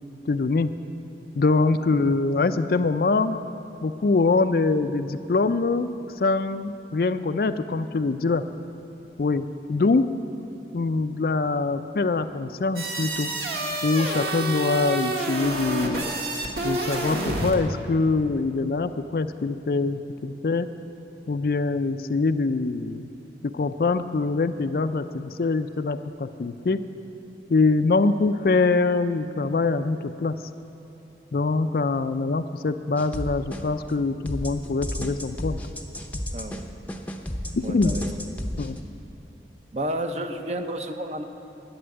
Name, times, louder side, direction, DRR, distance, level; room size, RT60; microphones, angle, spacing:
voice 1, 0.3-0.7 1.4-3.4 3.8-5.9 6.2-8.4 9.2-10.1 10.7-13.3 13.8-16.1 16.6-20.7 21.3-23.1 23.4-26.8 27.5-30.3 31.3-35.6 37.5-38.0 38.6-38.8, left 3 dB, 55° left, 11 dB, 0.4 m, -24 dB
sound 1, 12.8-17.6, right 1 dB, 65° right, 1.7 m, -28 dB
sound 2, 33.0-33.9 34.3-38.8, equal, 10° left, 0.7 m, -32 dB
voice 2, 36.3-36.6 37.6-38.2 39.7-41.2, right 1 dB, 40° right, 6 dB, 0.8 m, -31 dB
11.0 x 8.8 x 9.4 m, 2.9 s
head